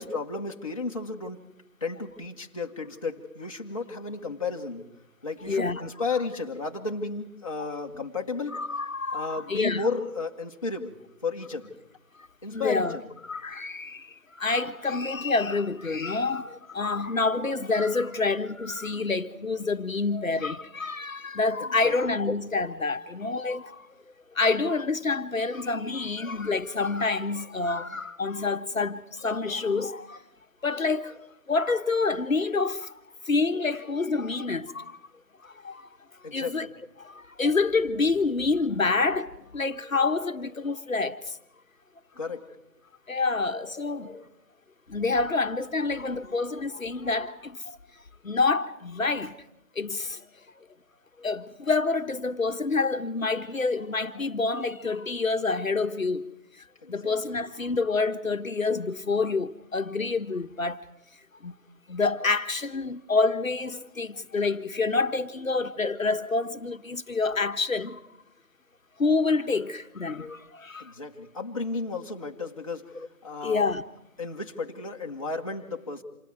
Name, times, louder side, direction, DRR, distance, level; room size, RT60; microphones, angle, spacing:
voice 1, 0.0-1.4 1.8-4.8 5.2-8.6 9.1-11.0 11.2-11.7 12.4-13.0 21.6-22.0 36.2-36.7 42.2-42.4 56.8-57.1 70.8-72.8 73.2-73.7 74.2-76.0, left 4 dB, 25° left, 1.2 m, -33 dB
voice 2, 5.5-5.8 7.6-7.7 8.5-9.9 12.5-13.0 13.3-23.9 24.3-30.2 30.6-31.2 31.5-32.9 33.2-35.0 35.4-35.9 36.3-36.7 37.0-41.4 43.1-44.3 44.9-47.8 48.2-49.4 49.7-50.2 50.6-50.7 51.2-60.8 61.4-61.5 61.9-68.0 69.0-70.9 72.9-73.1 73.4-73.8, left 3 dB, 65° left, 1.2 m, -27 dB
29.0 x 27.0 x 4.7 m
figure-of-eight pair, 165°, 45 cm